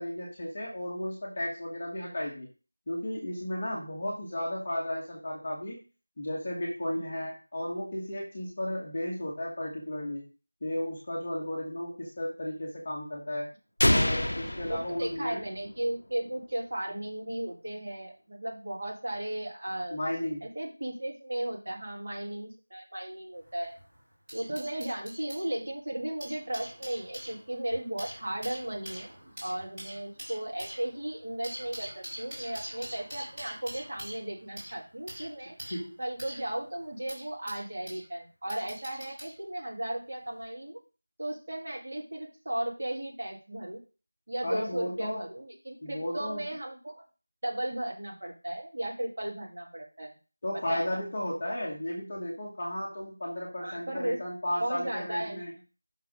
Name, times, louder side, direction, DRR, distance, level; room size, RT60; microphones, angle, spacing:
voice 1, 0.0-2.5 2.9-5.8 6.2-10.2 10.6-13.5 13.8-15.4 19.9-20.4 35.7-36.0 44.4-45.2 45.8-46.4 50.4-55.5, left 1 dB, 20° left, -3 dB, 1.1 m, -34 dB
sound 1, 13.8-15.7, left 1 dB, 75° left, 0.5 m, -27 dB
voice 2, 13.8-14.2 14.7-20.0 20.4-23.7 24.3-29.1 29.4-35.6 36.0-40.8 41.2-43.8 44.3-47.0 47.4-50.1 50.5-51.0 53.6-54.2 54.6-55.4, right 1 dB, 30° right, -2 dB, 2.1 m, -35 dB
sound 2, 23.4-25.5 26.0-38.1 38.5-39.4 40.3-40.4, equal, 5° right, 3.0 m, -44 dB
5.9 x 4.5 x 5.1 m, 0.33 s
figure-of-eight pair, 180°, 0 cm